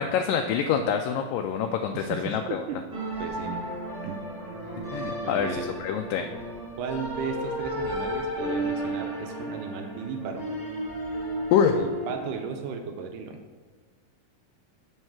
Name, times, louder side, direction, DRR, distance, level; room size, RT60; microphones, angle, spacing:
voice 1, 0.0-2.7 4.9-6.3 11.5-11.8, left 7 dB, 80° left, 4 dB, 2.0 m, -26 dB
voice 2, 1.9-2.8 3.2-3.6 4.0-4.2 5.2-5.7 6.8-10.5 11.8-13.4, right 6 dB, 80° right, 5 dB, 2.0 m, -35 dB
sound 1, 2.9-12.3, right 1 dB, 20° right, 0.6 m, -33 dB
7.8 x 5.4 x 5.9 m, 1.4 s
omnidirectional pair, 4.2 m